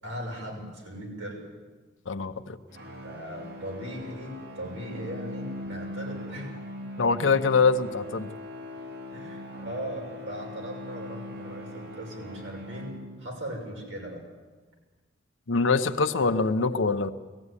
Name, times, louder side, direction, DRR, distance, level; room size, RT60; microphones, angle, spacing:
voice 1, 0.0-1.5 3.0-6.5 9.1-14.2, equal, 80° right, -1 dB, 6.3 m, -38 dB
voice 2, 2.1-2.6 7.0-8.3 15.5-17.1, left 4 dB, 80° left, 9 dB, 0.8 m, -24 dB
sound 1, 2.7-13.5, left 1 dB, 55° right, 2.9 m, -41 dB
19.5 x 15.0 x 9.8 m, 1.3 s
head